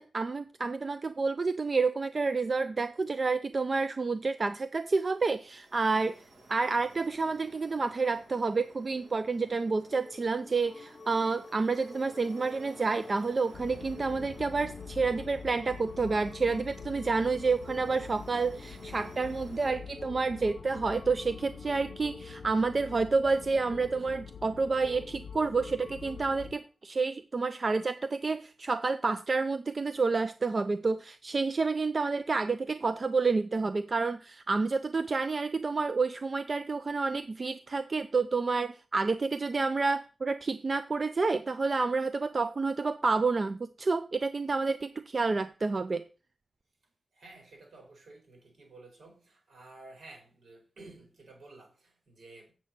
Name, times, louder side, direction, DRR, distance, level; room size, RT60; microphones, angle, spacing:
voice 1, 0.0-6.2 6.5-46.0, right 4 dB, 35° right, 0.4 m, -29 dB
sound 1, 4.1-19.7, right 2 dB, 85° right, 4.8 m, -56 dB
sound 2, 8.9-26.5, left 3 dB, 35° left, 0.8 m, -50 dB
sound 3, 13.5-26.6, left 7 dB, 85° left, 0.5 m, -46 dB
voice 2, 47.1-52.5, right 2 dB, 65° right, 5.1 m, -52 dB
7.9 x 7.4 x 5.9 m
wide cardioid pair, 175°, 0 cm